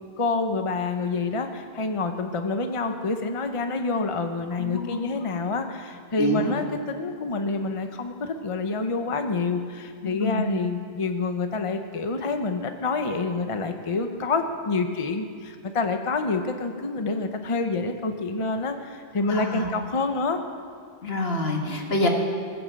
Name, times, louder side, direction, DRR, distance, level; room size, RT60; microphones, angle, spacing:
voice 1, 0.2-20.4, left 3 dB, 35° left, 6 dB, 0.9 m, -27 dB
voice 2, 4.6-5.1 6.2-6.6 10.2-10.5 19.3-19.7 21.0-22.1, left 1 dB, 75° left, 1 dB, 2.1 m, -26 dB
20.0 x 8.0 x 7.6 m, 2.2 s
omnidirectional pair, 1.0 m